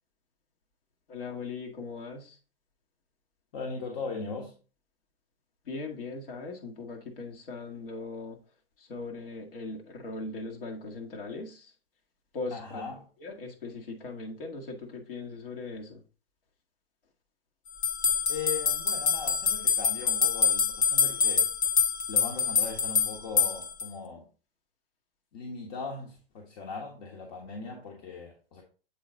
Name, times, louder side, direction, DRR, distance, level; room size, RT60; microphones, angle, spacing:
voice 1, 1.1-2.4 5.7-8.4 8.8-11.7 12.3-12.8 13.2-16.0, left 3 dB, 65° left, 0 dB, 1.9 m, -39 dB
voice 2, 3.5-4.6 12.5-13.0 18.3-21.5 22.1-24.3 25.3-28.6, left 4 dB, 40° left, 0 dB, 1.3 m, -39 dB
sound 1, 17.8-23.9, left 6 dB, 25° left, 0.8 m, -26 dB
7.5 x 4.1 x 3.7 m, 0.36 s
figure-of-eight pair, 110°, 30 cm